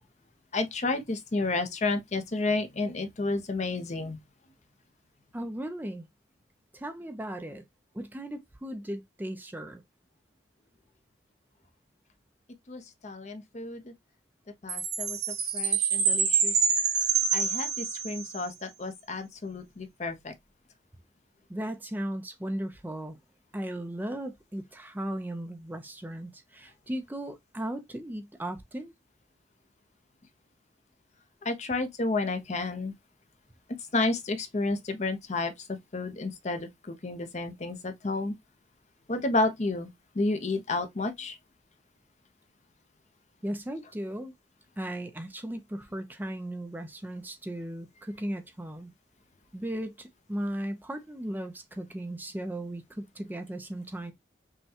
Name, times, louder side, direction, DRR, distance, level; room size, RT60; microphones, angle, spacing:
voice 1, 0.5-4.2 12.7-13.9 14.6-16.6 17.3-20.3 31.4-32.9 33.9-38.3 39.1-39.9 40.1-41.4, left 2 dB, 40° left, 0.6 m, -31 dB
voice 2, 5.3-6.1 6.7-7.6 7.9-9.8 21.5-23.2 23.5-28.9 43.4-44.3 44.8-48.9 49.5-54.1, right 1 dB, 10° right, 0.5 m, -36 dB
Chime, 14.7-18.4, right 6 dB, 75° right, 2.7 m, -26 dB
5.5 x 2.2 x 2.7 m
head